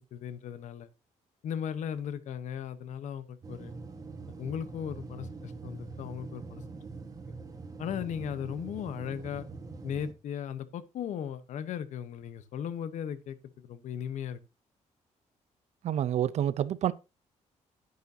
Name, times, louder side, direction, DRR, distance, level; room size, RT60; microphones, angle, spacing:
voice 1, 0.1-0.9 1.4-3.7 4.4-6.6 7.8-9.5 9.8-14.4, left 8 dB, 70° left, 1.0 m, -37 dB
sound 1, 3.4-10.1, right 3 dB, 30° right, 1.5 m, -44 dB
voice 2, 15.8-16.9, right 11 dB, 60° right, 0.5 m, -28 dB
10.5 x 9.3 x 2.7 m
cardioid pair, 150°, 13 cm